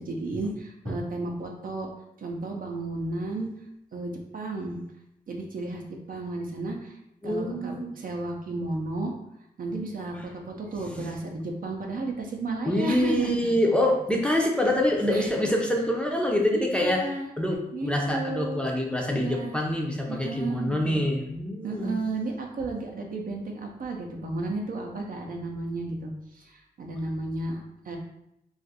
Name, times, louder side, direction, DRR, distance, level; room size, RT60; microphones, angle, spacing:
voice 1, 0.0-1.9 2.2-3.5 3.9-4.8 5.3-5.8 6.1-7.0 7.2-9.1 9.6-13.5 15.1-15.3 16.5-17.3 17.7-18.6 19.1-19.5 20.1-21.0 21.6-28.0, right 2 dB, 60° right, 1 dB, 0.6 m, -33 dB
voice 2, 7.2-7.9 10.9-11.1 12.7-17.0 17.4-22.0, left 1 dB, 5° left, 0 dB, 0.5 m, -26 dB
2.5 x 2.4 x 4.0 m, 0.80 s
wide cardioid pair, 105°, 16 cm